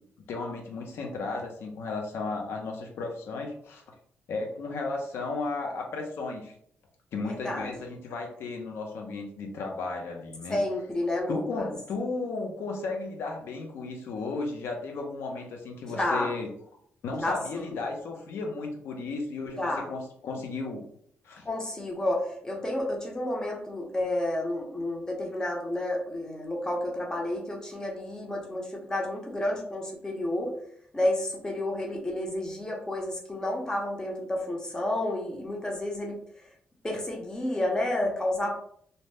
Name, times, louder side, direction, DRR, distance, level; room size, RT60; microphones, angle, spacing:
voice 1, 0.3-3.8 4.3-6.5 7.1-10.6 11.3-16.5 17.0-20.8 21.2-21.4, left 3 dB, 85° left, 2 dB, 0.6 m, -34 dB
voice 2, 7.3-7.7 10.5-11.7 15.9-16.3 17.1-17.8 19.6-19.9 21.4-30.5 30.9-36.2 36.8-38.5, left 1 dB, 15° left, -1 dB, 0.7 m, -30 dB
2.6 x 2.0 x 3.3 m, 0.64 s
cardioid pair, 120°, 4 cm